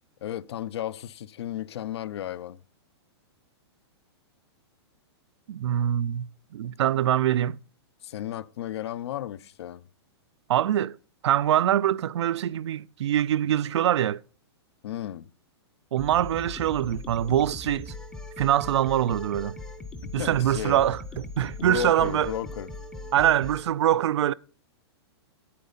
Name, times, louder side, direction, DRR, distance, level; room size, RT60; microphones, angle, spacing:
voice 1, 0.2-2.6 8.0-9.8 14.8-15.2 20.0-20.8 21.6-22.7, left 11 dB, 70° left, 0.5 m, -34 dB
voice 2, 5.5-7.6 10.5-11.0 11.2-14.2 15.9-17.9 18.4-19.6 20.1-22.3 23.1-24.3, right 11 dB, 80° right, 0.4 m, -24 dB
sound 1, 16.0-23.6, left 2 dB, 5° left, 0.5 m, -39 dB
9.5 x 8.5 x 4.0 m
hypercardioid pair, 165°, 14 cm